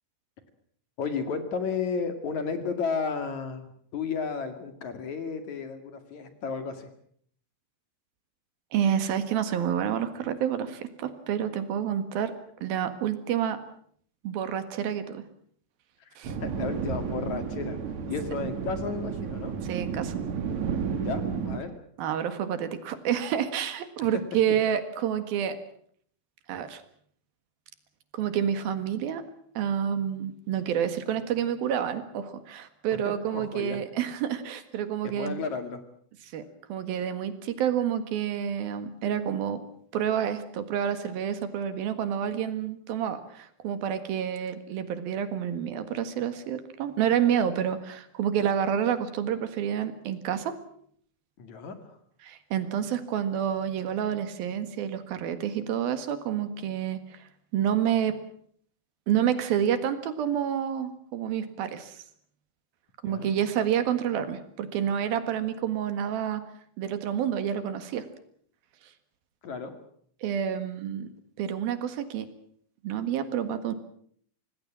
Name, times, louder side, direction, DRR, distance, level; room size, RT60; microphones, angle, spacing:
voice 1, 1.0-6.9 16.4-17.8 18.1-19.5 21.0-21.7 33.3-33.8 35.0-35.8 51.4-51.8 63.0-63.3 69.4-69.7, left 5 dB, 55° left, 8 dB, 3.4 m, -33 dB
voice 2, 8.7-12.3 12.6-13.6 14.2-15.2 16.2-16.4 19.6-20.2 22.0-25.6 26.5-26.8 28.1-29.2 29.6-35.4 36.3-36.4 36.7-39.6 39.9-50.6 52.2-58.2 59.1-62.0 63.0-66.4 66.8-68.1 70.2-71.1 71.4-72.3 72.8-73.7, right 9 dB, 80° right, 10 dB, 3.6 m, -29 dB
sound 1, 16.2-21.6, right 6 dB, 55° right, 2.9 m, -32 dB
26.0 x 18.5 x 7.5 m, 0.62 s
omnidirectional pair, 4.2 m